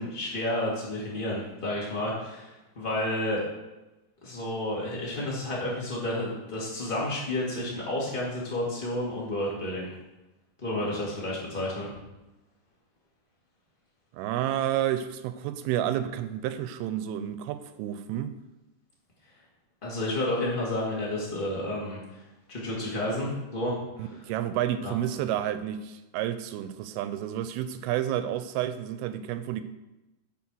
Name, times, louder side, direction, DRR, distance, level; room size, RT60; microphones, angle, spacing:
voice 1, 0.0-3.4 4.2-9.9 10.6-11.9 19.8-22.0 22.5-23.7 24.8-24.9, left 1 dB, 80° left, -5 dB, 0.4 m, -31 dB
voice 2, 14.1-18.3 24.0-29.6, right 11 dB, 85° right, 11 dB, 2.4 m, -30 dB
9.4 x 4.4 x 6.2 m, 1.0 s
omnidirectional pair, 4.4 m